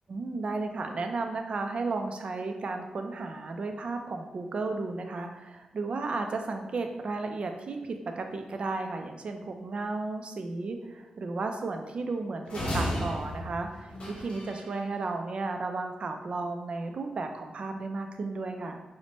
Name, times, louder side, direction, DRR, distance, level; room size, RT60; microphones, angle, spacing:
voice 1, 0.1-18.8, right 3 dB, 50° right, 5 dB, 0.4 m, -34 dB
sound 1, 12.5-14.7, equal, 50° left, 0.9 m, -34 dB
4.3 x 2.1 x 2.9 m, 1.1 s
wide cardioid pair, 110°, 2 cm